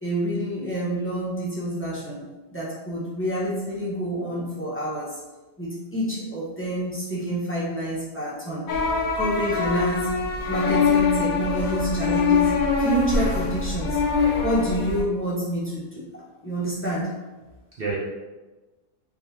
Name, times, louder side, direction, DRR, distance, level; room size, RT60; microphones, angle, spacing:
voice 1, 0.0-2.2 2.5-5.2 5.6-8.7 9.2-10.2 10.5-14.0 14.4-17.1, right 1 dB, 15° left, -8 dB, 0.4 m, -28 dB
sound 1, 8.7-15.0, left 5 dB, 70° left, 0.9 m, -23 dB
voice 2, 10.6-11.2 13.2-13.4 17.8-18.0, right 3 dB, 60° right, -6 dB, 0.6 m, -33 dB
3.5 x 2.7 x 2.8 m, 1.2 s
omnidirectional pair, 1.6 m